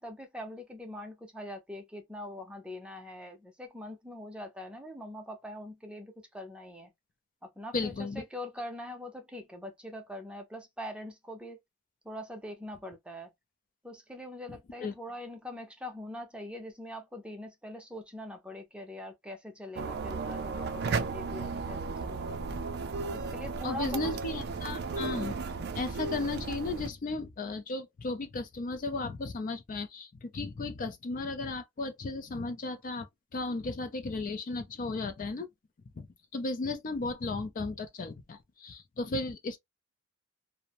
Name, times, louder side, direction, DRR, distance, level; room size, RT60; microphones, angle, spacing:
voice 1, 0.0-6.9 7.4-11.6 12.0-13.3 13.8-22.4 23.1-24.1, left 1 dB, 5° right, 0.6 m, -43 dB
voice 2, 7.7-8.2 14.5-15.0 23.6-25.4 25.7-33.1 33.3-35.5 36.0-36.1 36.3-39.6, left 3 dB, 45° left, 0.4 m, -35 dB
sound 1, 19.8-26.9, right 4 dB, 55° right, 0.4 m, -35 dB
2.6 x 2.0 x 2.8 m
head